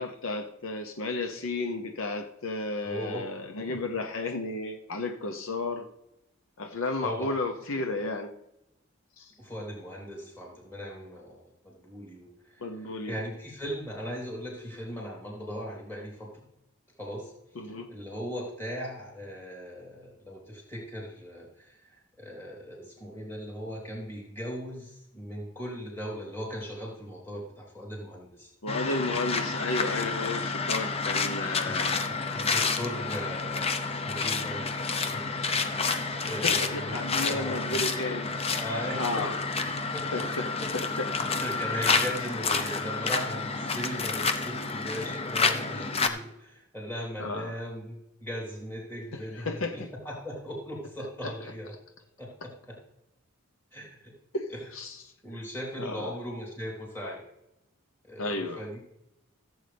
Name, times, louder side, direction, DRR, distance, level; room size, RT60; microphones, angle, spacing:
voice 1, 0.0-5.9 6.6-8.3 9.2-9.3 12.6-13.2 17.6-17.9 28.6-32.0 36.2-38.3 39.0-39.4 40.1-41.1 47.2-47.6 49.1-49.9 51.2-51.3 54.3-55.1 55.8-56.1 58.2-58.6, left 2 dB, 70° left, 5 dB, 0.8 m, -33 dB
voice 2, 2.8-3.2 3.7-3.8 7.0-7.3 9.4-16.3 17.0-17.3 17.6-28.5 31.6-31.7 32.1-34.8 35.1-35.2 35.7-36.8 37.1-37.8 38.6-39.2 39.9-40.2 40.9-51.7 52.2-52.8 53.7-54.1 54.5-54.6 55.2-57.2 58.0-58.9, equal, 10° left, -3 dB, 3.4 m, -38 dB
sound 1, 28.7-46.1, left 4 dB, 25° left, 0.7 m, -29 dB
15.5 x 8.0 x 3.4 m, 0.86 s
head